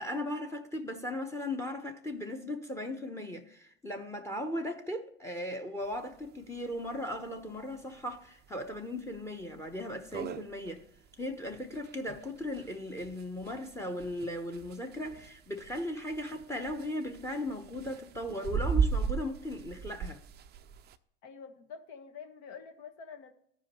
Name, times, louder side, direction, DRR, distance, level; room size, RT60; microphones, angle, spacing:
voice 1, 0.0-10.8 11.2-20.2, left 1 dB, 10° left, 0.8 m, -37 dB
sound 1, 5.9-6.0 6.3-6.4 6.7-6.8 7.4-7.6 8.1-8.2 8.7-8.8 9.1-9.2 9.7-9.8 9.9-21.0, right 6 dB, 30° right, 0.4 m, -36 dB
voice 2, 21.2-23.3, left 6 dB, 60° left, 1.3 m, -47 dB
14.0 x 4.9 x 3.0 m
hypercardioid pair, 85°, 35 cm